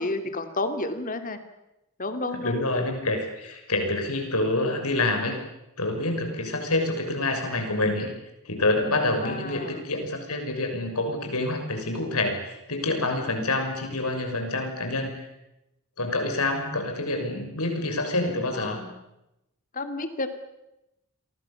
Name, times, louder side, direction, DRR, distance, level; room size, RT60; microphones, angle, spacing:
voice 1, 0.0-1.4 2.0-2.6 6.3-6.5 9.2-9.8 18.5-18.9 19.7-20.3, left 2 dB, 40° left, 8 dB, 2.7 m, -31 dB
voice 2, 2.3-5.3 5.8-8.1 8.4-15.1 16.0-18.8, left 2 dB, 85° left, 4 dB, 6.7 m, -27 dB
29.5 x 23.0 x 7.2 m, 0.91 s
head